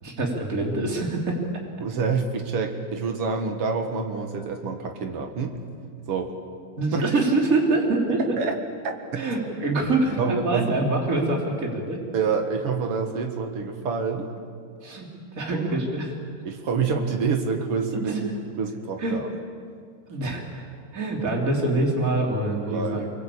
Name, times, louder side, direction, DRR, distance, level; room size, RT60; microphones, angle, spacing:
voice 1, 0.0-1.4 6.8-8.2 9.2-12.0 14.8-15.1 15.3-16.1 17.9-18.2 19.0-19.2 20.1-20.6 20.9-23.1, right 2 dB, 20° right, 0 dB, 3.4 m, -25 dB
voice 2, 1.8-5.5 6.1-6.3 6.9-7.0 8.4-8.6 8.8-9.3 10.2-10.7 12.1-14.3 15.5-15.7 16.4-18.1 18.6-19.3 22.7-23.1, right 5 dB, 50° right, 5 dB, 1.9 m, -27 dB
25.0 x 23.0 x 8.6 m, 2.2 s
omnidirectional pair, 4.6 m